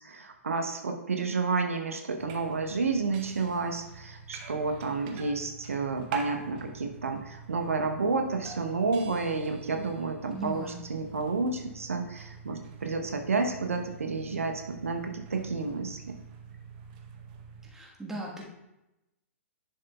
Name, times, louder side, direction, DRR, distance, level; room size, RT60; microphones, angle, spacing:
voice 1, 0.0-16.1, right 4 dB, 70° right, 5 dB, 0.8 m, -30 dB
sound 1, 2.2-17.7, right 6 dB, 35° right, 0.9 m, -45 dB
voice 2, 10.3-10.8 17.7-18.5, right 1 dB, 5° right, -3 dB, 1.4 m, -38 dB
10.5 x 6.5 x 2.3 m, 0.92 s
figure-of-eight pair, 110°, 8 cm